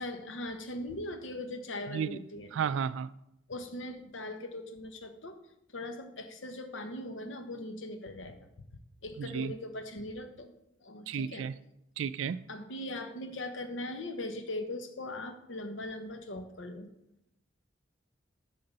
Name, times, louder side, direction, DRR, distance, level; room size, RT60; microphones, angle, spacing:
voice 1, 0.0-2.5 3.5-5.4 5.7-8.4 9.0-10.5 10.8-11.5 12.5-16.9, left 1 dB, 75° left, 1.0 m, -40 dB
voice 2, 1.9-2.2 2.5-3.1 9.2-9.5 11.1-11.5 12.0-12.4, right 7 dB, 75° right, 0.3 m, -33 dB
10.5 x 3.8 x 5.4 m
head